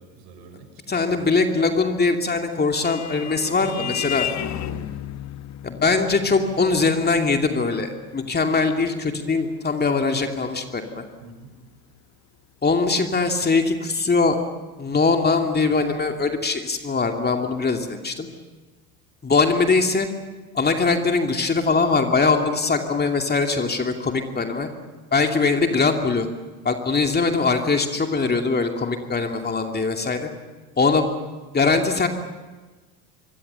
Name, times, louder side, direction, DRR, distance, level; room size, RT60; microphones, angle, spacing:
voice 1, 0.0-1.4 3.2-5.2 11.2-11.5, right 4 dB, 60° right, 6 dB, 5.5 m, -42 dB
voice 2, 0.9-4.3 5.6-11.0 12.6-14.4 14.8-18.3 19.2-20.1 20.5-24.7 25.1-26.3 26.6-30.3 30.8-31.1 31.5-32.1, left 4 dB, 20° left, 4 dB, 2.6 m, -21 dB
Vehicle horn car horn honking, 2.2-11.2, left 11 dB, 40° left, 1.2 m, -35 dB
26.5 x 23.5 x 6.9 m, 1.3 s
hypercardioid pair, 70°, 45 cm